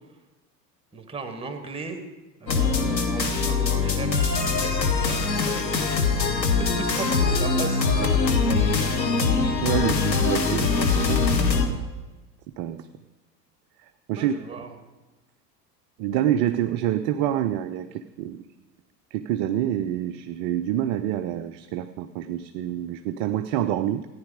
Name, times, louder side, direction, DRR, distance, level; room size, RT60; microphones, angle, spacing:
voice 1, 0.9-2.0 2.4-9.0 14.1-14.8, right 4 dB, 10° right, 6 dB, 1.8 m, -37 dB
sound 1, 2.5-11.7, left 4 dB, 85° left, 1.3 m, -23 dB
voice 2, 9.4-11.4 11.7-11.8 12.6-12.9 13.8-14.3 16.0-18.4 19.1-24.1, right 11 dB, 35° right, 9 dB, 0.4 m, -27 dB
14.5 x 10.0 x 5.0 m, 1.2 s
figure-of-eight pair, 80°, 50 cm